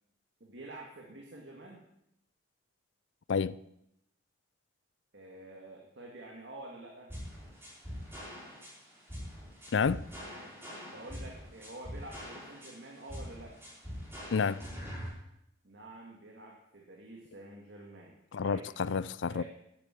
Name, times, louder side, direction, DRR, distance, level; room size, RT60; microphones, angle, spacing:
voice 1, 0.4-1.8 5.1-7.1 10.1-10.6 10.9-13.6 15.6-18.2 18.4-18.7 19.2-19.4, right 1 dB, 60° right, 2.1 m, -48 dB
voice 2, 3.3-3.6 9.7-10.1 14.3-14.6 18.3-19.4, left 5 dB, 70° left, 0.4 m, -29 dB
sound 1, 7.1-15.1, equal, 10° right, 3.8 m, -44 dB
10.0 x 10.0 x 7.6 m
head